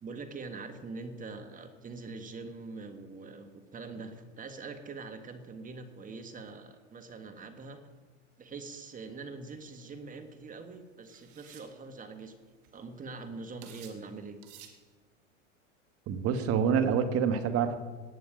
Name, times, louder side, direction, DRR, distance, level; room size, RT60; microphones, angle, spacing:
voice 1, 0.0-7.8 8.4-14.4, right 3 dB, 20° right, 7 dB, 1.6 m, -43 dB
sound 1, 9.7-9.9 11.1-11.7 12.4-12.5 12.6-13.0 13.6-14.0 14.4-14.8, right 9 dB, 55° right, 2.2 m, -52 dB
voice 2, 16.1-17.8, right 7 dB, 40° right, 9 dB, 1.4 m, -27 dB
18.0 x 9.5 x 5.1 m, 1.4 s
hypercardioid pair, 110°, 38 cm